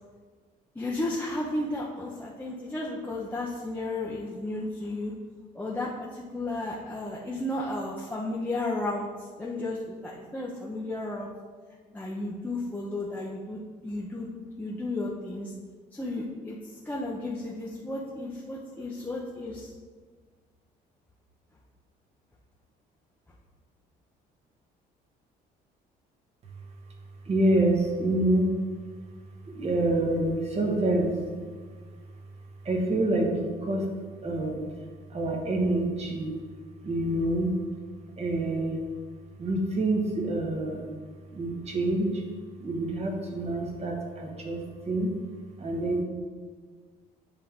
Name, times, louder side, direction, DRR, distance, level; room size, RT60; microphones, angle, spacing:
voice 1, 0.7-5.1 5.5-9.1 9.4-11.3 11.9-14.3 14.6-15.5 15.9-16.6 16.8-19.7, left 2 dB, 10° left, -5 dB, 0.9 m, -33 dB
voice 2, 27.2-28.5 29.5-31.2 32.6-33.8 34.2-34.6 35.1-36.3 36.8-37.6 38.2-38.8 39.4-40.9 41.3-42.3 42.6-45.1 45.6-46.0, right 1 dB, 40° right, 0 dB, 1.5 m, -27 dB
10.5 x 3.6 x 3.6 m, 1.5 s
cardioid pair, 110°, 17 cm